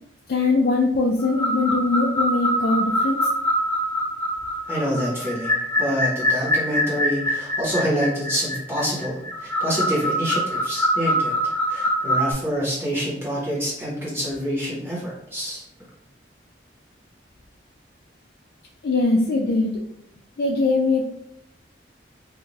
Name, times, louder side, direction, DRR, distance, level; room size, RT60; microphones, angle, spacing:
voice 1, 0.3-3.2 18.8-19.7 20.4-21.1, left 3 dB, 55° left, -2 dB, 0.3 m, -21 dB
sound 1, 1.2-12.3, equal, 10° left, 0.9 m, -24 dB
voice 2, 4.7-11.3 11.7-15.6, equal, 10° right, -7 dB, 1.0 m, -27 dB
2.5 x 2.3 x 3.1 m, 0.75 s
head